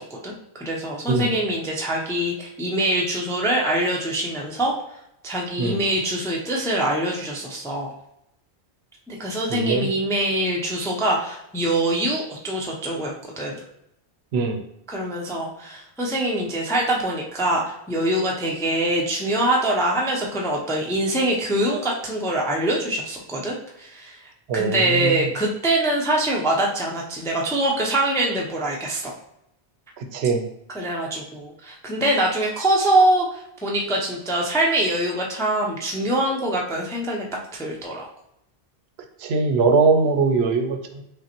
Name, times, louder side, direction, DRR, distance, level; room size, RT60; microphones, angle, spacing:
voice 1, 0.0-4.7 5.2-7.9 9.1-13.5 14.9-24.2 24.5-29.1 30.7-37.3 37.5-38.0, right 1 dB, 5° left, -2 dB, 0.4 m, -24 dB
voice 2, 9.5-9.9 14.3-14.6 24.5-25.2 30.1-30.4 39.2-41.0, right 4 dB, 75° right, 5 dB, 0.8 m, -21 dB
5.1 x 2.1 x 2.9 m, 0.79 s
omnidirectional pair, 1.1 m